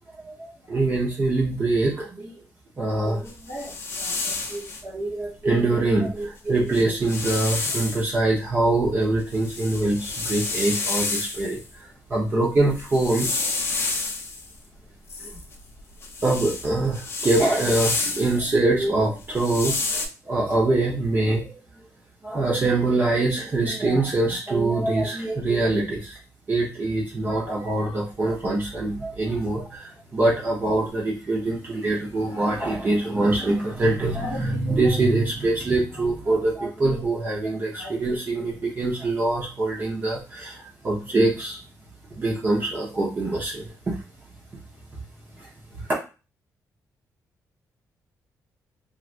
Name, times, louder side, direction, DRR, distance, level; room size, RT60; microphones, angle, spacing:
voice 1, 0.1-2.4 2.8-13.4 15.2-15.4 16.2-21.5 22.2-26.2 26.5-41.6 42.2-44.0 45.4-45.5, right 2 dB, 35° right, -4 dB, 0.8 m, -24 dB
sound 1, 3.2-4.8 6.2-6.3 6.6-8.1 8.6-11.6 12.6-14.5 15.1-18.5 19.2-20.1, left 3 dB, 45° left, 0.7 m, -29 dB
3.1 x 2.5 x 2.5 m, 0.32 s
cardioid pair, 110°, 6 cm